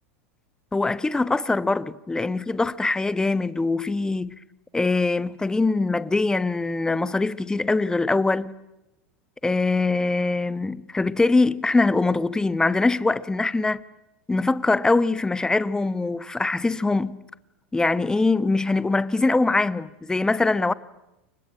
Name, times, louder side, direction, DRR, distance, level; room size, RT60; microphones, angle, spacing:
voice 1, 0.7-4.3 4.7-8.5 9.4-13.8 14.3-17.2 17.7-20.7, left 3 dB, 10° left, 1.1 m, -23 dB
29.5 x 25.0 x 7.6 m
hypercardioid pair, 90°, 7 cm